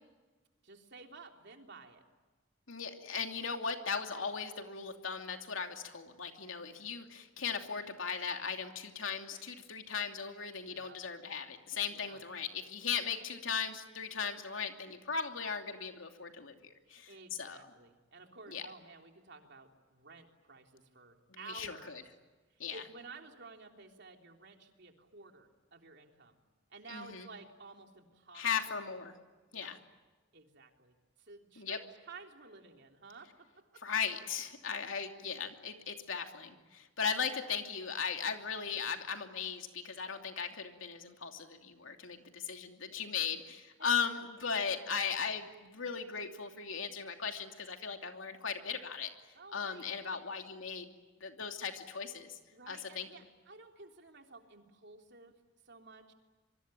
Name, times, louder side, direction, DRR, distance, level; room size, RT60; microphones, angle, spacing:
voice 1, 0.6-2.0 10.7-11.0 11.9-12.2 16.9-22.0 22.5-26.4 26.7-28.8 29.5-29.7 30.3-33.8 49.3-50.2 52.5-55.4 55.6-56.1, right 4 dB, 60° right, 3 dB, 3.4 m, -53 dB
voice 2, 2.7-17.1 17.4-17.6 18.5-18.6 21.3-21.8 22.6-22.8 26.9-27.3 28.3-29.1 29.5-29.8 31.6-31.8 33.8-49.1 49.5-50.9 51.2-52.4 52.7-53.1, left 6 dB, 90° left, 4 dB, 2.8 m, -37 dB
26.0 x 24.0 x 9.0 m, 1.3 s
head